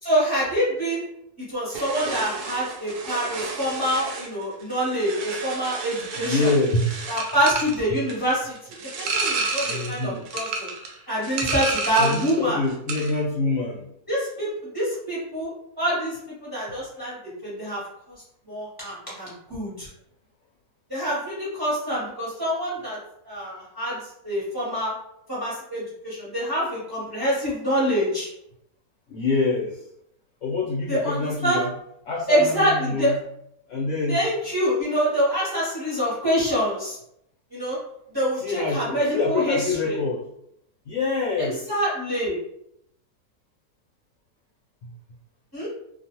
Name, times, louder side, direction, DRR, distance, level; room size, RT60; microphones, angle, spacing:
voice 1, 0.0-1.0 1.5-6.5 7.1-8.5 9.0-10.7 11.1-12.6 14.1-15.5 15.8-16.2 16.4-17.8 18.1-18.2 18.5-19.9 20.9-23.0 23.2-24.0 24.2-24.9 25.3-28.3 30.9-31.6 32.3-33.1 34.1-37.0 37.5-37.8 38.1-39.6 39.8-39.9 41.4-42.4 45.5-45.7, equal, 20° right, -7 dB, 0.9 m, -25 dB
sound 1, 1.7-12.4 12.7-13.2, right 4 dB, 80° right, 1.1 m, -31 dB
voice 2, 6.2-7.1 7.9-8.0 9.7-10.3 12.0-13.8 29.1-29.8 30.4-31.7 32.0-33.2 33.7-34.2 38.4-40.2 40.9-41.7 44.8-44.9, left 3 dB, 60° left, -6 dB, 0.9 m, -26 dB
2.4 x 2.3 x 2.9 m, 0.74 s
omnidirectional pair, 1.6 m